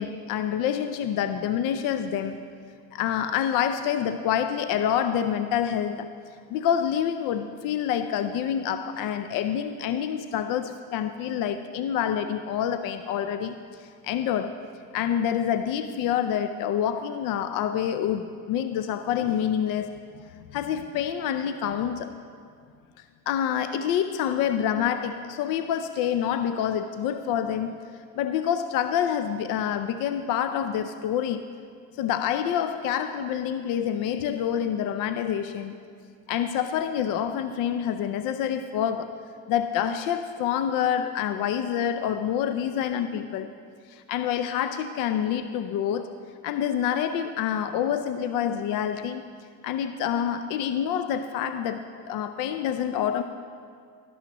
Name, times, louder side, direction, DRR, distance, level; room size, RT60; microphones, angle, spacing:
voice 1, 0.0-2.4 2.9-6.1 6.5-14.6 14.9-19.9 20.5-22.1 23.3-27.8 28.1-31.4 32.0-35.7 36.3-39.1 39.5-43.5 43.9-46.1 46.4-49.2 49.6-53.2, left 9 dB, 55° left, 10 dB, 0.6 m, -27 dB
12.5 x 11.5 x 3.0 m, 2.1 s
supercardioid pair, 90°, 41 cm